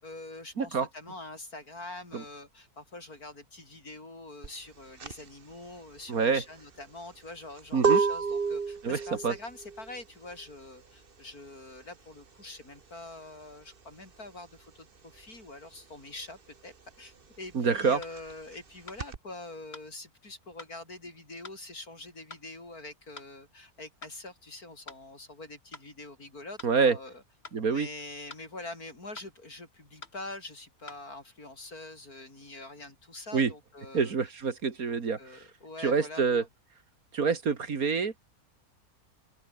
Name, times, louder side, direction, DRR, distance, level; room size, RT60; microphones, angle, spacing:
voice 1, 0.0-27.2 27.7-34.1 34.9-36.2, left 2 dB, 75° left, 6.7 m, -45 dB
voice 2, 0.6-0.9 2.1-2.2 6.1-6.4 7.7-8.0 8.8-9.0 9.2-9.3 17.5-18.0 26.6-27.0 27.5-27.9 33.3-33.5 33.9-35.4 35.8-36.4 37.1-38.2, right 5 dB, 70° right, 2.5 m, -26 dB
sound 1, 4.4-14.7 15.0-19.2, right 5 dB, 40° right, 1.5 m, -32 dB
sound 2, 18.0-18.2 18.9-19.0 19.7-19.9 20.6-20.7 21.4-21.6 22.3-22.5 23.2-23.3 24.0-24.2 24.9-25.0 25.7-25.9 26.6-26.7 27.4-27.6 28.3-28.5 29.2-29.3 30.0-30.2 30.9-31.0, left 3 dB, 45° left, 3.4 m, -47 dB
open air
omnidirectional pair, 1.6 m